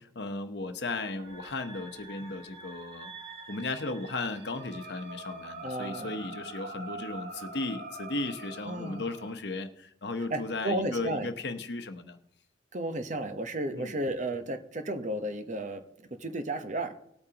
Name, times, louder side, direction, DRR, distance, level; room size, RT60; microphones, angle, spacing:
voice 1, 0.0-3.1 3.5-12.2 13.7-13.9, left 2 dB, 65° left, 9 dB, 1.0 m, -36 dB
sound 1, 1.2-9.3, right 2 dB, 85° right, 3.3 m, -44 dB
voice 2, 5.6-6.2 8.6-9.0 10.3-11.3 12.7-15.8 16.1-17.0, right 1 dB, 40° right, 8 dB, 1.0 m, -33 dB
19.5 x 8.7 x 2.9 m, 0.75 s
head